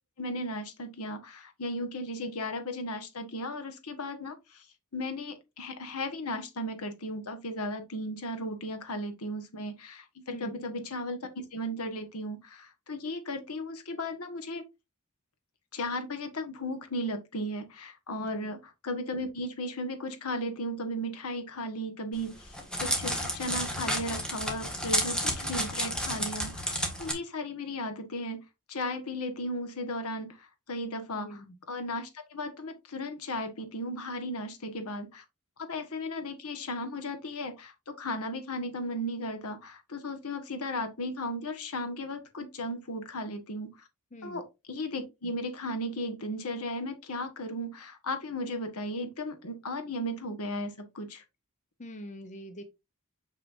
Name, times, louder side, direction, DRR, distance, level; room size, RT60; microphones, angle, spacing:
voice 1, 0.2-4.6 4.9-14.6 15.7-22.5 22.8-28.4 28.7-30.4 30.7-35.2 35.6-43.7 44.2-51.2, left 1 dB, 75° left, 1.4 m, -36 dB
voice 2, 18.2-18.5 31.1-31.5 44.1-44.4 51.8-52.6, equal, 35° left, 0.7 m, -44 dB
Crackle, 22.2-27.1, equal, 5° left, 1.7 m, -31 dB
6.6 x 6.0 x 2.6 m
head